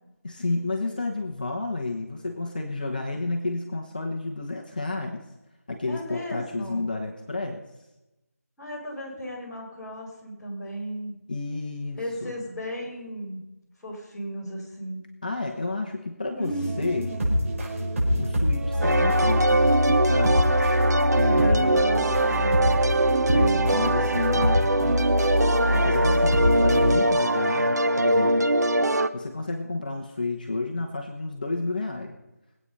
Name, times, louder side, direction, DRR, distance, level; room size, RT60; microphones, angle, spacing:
voice 1, 0.2-5.2 5.7-7.6 11.3-12.3 15.2-17.1 18.2-20.5 21.1-21.8 23.3-25.0 25.7-28.5 29.1-32.1, left 3 dB, 30° left, 2 dB, 1.1 m, -31 dB
voice 2, 5.9-6.9 8.6-11.2 12.0-13.5 13.8-15.0 16.4-17.4 21.3-22.8, equal, 5° left, -15 dB, 4.0 m, -35 dB
sound 1, 16.5-26.9, equal, 55° right, 5.2 m, -25 dB
sound 2, 18.8-29.1, right 1 dB, 90° right, 1.0 m, -22 dB
21.0 x 8.7 x 5.5 m, 0.99 s
figure-of-eight pair, 175°, 9 cm